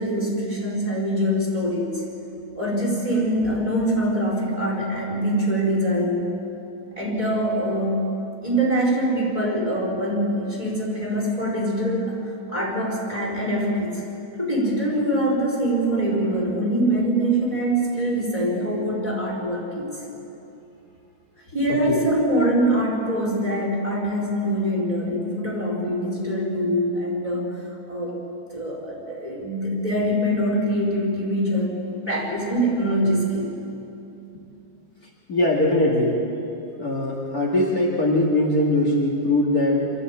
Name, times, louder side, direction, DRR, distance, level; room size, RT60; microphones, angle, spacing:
voice 1, 0.0-2.0 2.6-6.3 7.0-8.1 8.4-12.2 12.5-14.0 14.4-20.0 21.5-27.5 27.9-28.3 28.5-31.8 32.1-33.5, right 1 dB, 15° right, -5 dB, 5.2 m, -24 dB
voice 2, 21.7-22.0 35.3-36.2 36.8-39.9, left 1 dB, 45° left, -3 dB, 2.8 m, -21 dB
25.0 x 14.0 x 8.6 m, 2.8 s
omnidirectional pair, 2.3 m